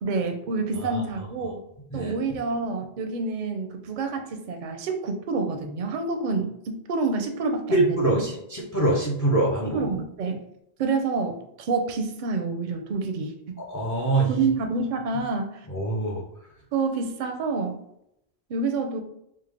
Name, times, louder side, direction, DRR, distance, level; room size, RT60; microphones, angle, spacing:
voice 1, 0.0-1.6 1.9-8.2 9.7-10.4 10.8-13.6 14.3-15.6 16.7-17.8 18.5-19.0, right 4 dB, 55° right, 5 dB, 0.6 m, -28 dB
voice 2, 7.7-9.9 13.7-14.4 15.7-16.2, right 2 dB, 30° left, -3 dB, 0.4 m, -24 dB
3.3 x 2.0 x 3.3 m, 0.78 s
omnidirectional pair, 1.1 m